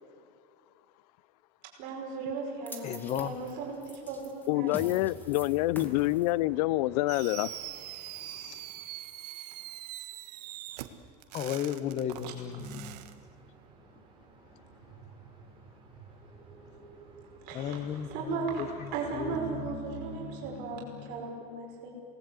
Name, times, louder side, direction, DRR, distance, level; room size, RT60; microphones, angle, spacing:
voice 1, 1.8-4.9 10.7-10.8 17.5-17.8 18.1-18.6 18.9-21.9, right 4 dB, 50° right, 5.4 m, -36 dB
sound 1, 2.7-8.9, left 1 dB, 10° left, 2.3 m, -47 dB
voice 2, 2.8-3.4 11.3-13.0 17.5-19.8, left 9 dB, 35° left, 1.0 m, -35 dB
voice 3, 4.5-7.6 8.2-8.6, left 18 dB, 75° left, 0.5 m, -27 dB
Fireworks, 7.1-13.1, right 15 dB, 80° right, 1.5 m, -43 dB
sound 2, 12.6-20.9, right 1 dB, 25° right, 6.3 m, -47 dB
27.5 x 19.5 x 8.2 m
supercardioid pair, 150°, 20 cm